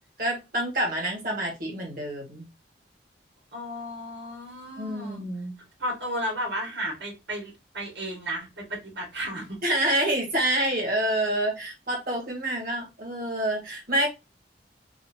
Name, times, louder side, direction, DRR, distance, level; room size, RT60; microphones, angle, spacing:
voice 1, 0.2-2.4 4.8-5.5 9.6-14.1, right 1 dB, 55° right, 1.7 m, -27 dB
voice 2, 3.5-5.2 5.8-9.6, equal, 75° right, 2.0 m, -33 dB
3.8 x 3.0 x 2.7 m
head